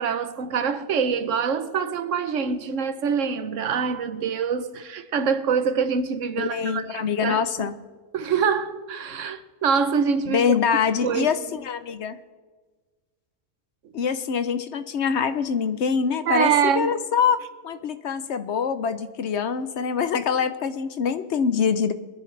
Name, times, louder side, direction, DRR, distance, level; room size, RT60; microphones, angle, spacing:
voice 1, 0.0-7.4 8.1-10.5 11.0-11.3 16.3-16.9, right 6 dB, 85° right, 1.2 m, -25 dB
voice 2, 6.4-7.7 10.3-12.2 13.9-16.5 16.8-17.4 17.6-21.9, left 6 dB, 65° left, 1.0 m, -24 dB
23.0 x 10.5 x 3.3 m
omnidirectional pair, 1.3 m